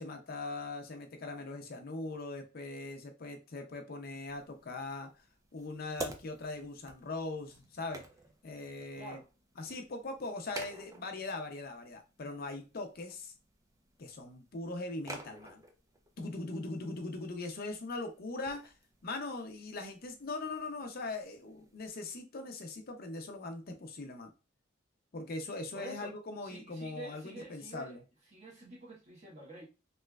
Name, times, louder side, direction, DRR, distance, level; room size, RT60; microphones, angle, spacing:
voice 1, 0.0-5.2 5.5-8.0 8.4-9.2 9.6-13.3 14.0-15.6 16.2-18.7 19.0-24.3 25.1-28.0, left 2 dB, 50° left, 0.5 m, -41 dB
sound 1, 4.3-21.9, right 2 dB, 15° right, 0.4 m, -51 dB
voice 2, 9.0-9.3 25.7-26.1 26.4-28.0 28.3-29.6, right 2 dB, 35° right, 1.2 m, -48 dB
3.2 x 2.9 x 2.3 m
head